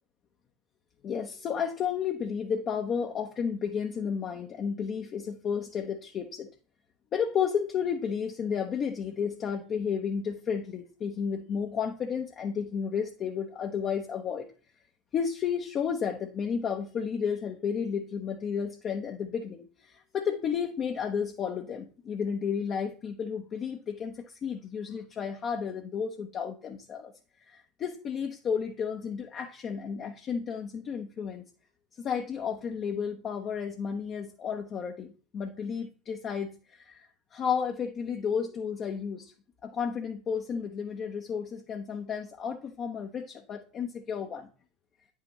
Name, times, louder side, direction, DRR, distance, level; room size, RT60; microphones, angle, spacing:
voice 1, 1.0-6.5 7.1-14.5 15.1-27.1 27.4-31.4 32.0-37.1 37.3-39.3 39.6-44.5, left 7 dB, 40° left, 3 dB, 0.9 m, -32 dB
9.4 x 5.7 x 3.1 m, 0.38 s
figure-of-eight pair, 75°, 0 cm